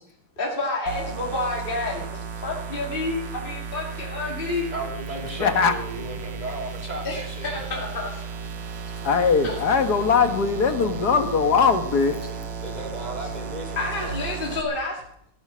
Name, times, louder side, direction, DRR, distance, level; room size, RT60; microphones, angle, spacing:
voice 1, 0.4-4.7 7.0-8.2 9.4-9.5 13.2-13.3 13.8-15.0, left 2 dB, 30° left, -2 dB, 2.5 m, -29 dB
sound 1, 0.9-14.6, right 5 dB, 80° right, 2.0 m, -35 dB
voice 2, 4.7-7.7 12.6-14.1, right 1 dB, 20° right, 0 dB, 3.6 m, -35 dB
voice 3, 5.4-5.8 9.0-12.2, left 5 dB, 60° left, 8 dB, 1.9 m, -20 dB
16.0 x 12.5 x 6.2 m, 0.70 s
omnidirectional pair, 2.0 m